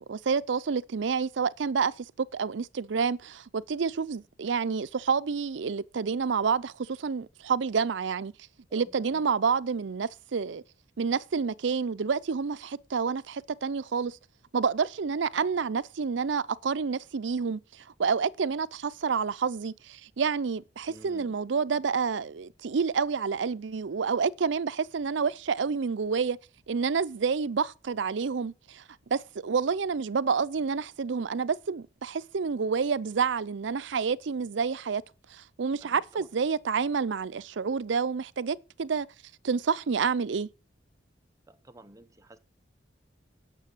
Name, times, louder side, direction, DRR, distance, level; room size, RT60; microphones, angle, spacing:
voice 1, 0.0-8.3 8.7-10.6 11.0-14.2 14.5-26.4 26.7-28.8 29.1-35.0 35.3-39.1 39.4-40.5, right 5 dB, 75° right, 0.5 m, -29 dB
voice 2, 8.7-9.3 20.8-21.4 35.8-36.3 41.5-42.4, right 1 dB, 15° right, 0.8 m, -52 dB
9.1 x 6.9 x 8.1 m
head